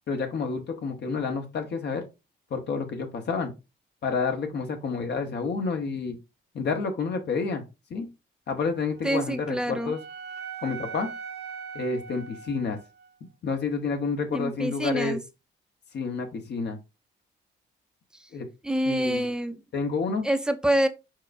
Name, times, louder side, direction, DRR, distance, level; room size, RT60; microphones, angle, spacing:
voice 1, 0.1-2.0 2.5-3.5 4.0-6.2 6.5-7.6 7.9-8.1 8.5-10.0 10.6-11.1 11.7-12.8 13.4-15.2 15.9-16.8 18.3-18.5 18.9-19.3 19.7-20.2, left 4 dB, 60° left, 1.0 m, -29 dB
Wind instrument woodwind instrument, 8.9-13.2, right 6 dB, 55° right, 0.7 m, -41 dB
voice 2, 9.0-9.9 14.3-15.2 18.6-19.6 20.2-20.9, right 1 dB, 5° right, 0.6 m, -26 dB
4.6 x 4.5 x 2.5 m
cardioid pair, 90°, 20 cm